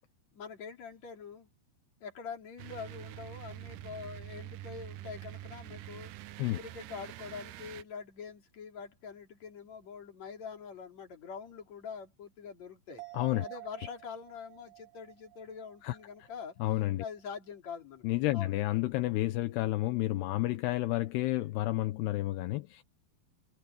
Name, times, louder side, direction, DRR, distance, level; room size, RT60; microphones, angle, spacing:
voice 1, 0.3-1.5 2.0-6.1 6.6-13.0 13.4-16.6 17.0-18.0 18.3-18.6, left 6 dB, 45° left, 4.3 m, -44 dB
sound 1, 2.6-7.8, right 14 dB, 85° right, 1.8 m, -46 dB
sound 2, 13.0-16.7 17.0-17.1, right 29 dB, 45° right, 5.7 m, -51 dB
voice 2, 13.1-13.4 15.8-16.0 16.6-17.0 18.0-22.8, left 17 dB, 80° left, 2.9 m, -30 dB
omnidirectional pair, 4.7 m